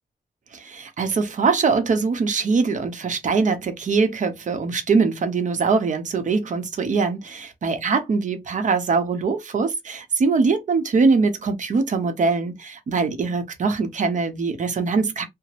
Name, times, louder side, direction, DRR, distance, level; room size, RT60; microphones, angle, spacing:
voice 1, 0.5-15.2, right 4 dB, 50° right, 0.8 m, -22 dB
2.9 x 2.0 x 2.9 m
cardioid pair, 85°, 16 cm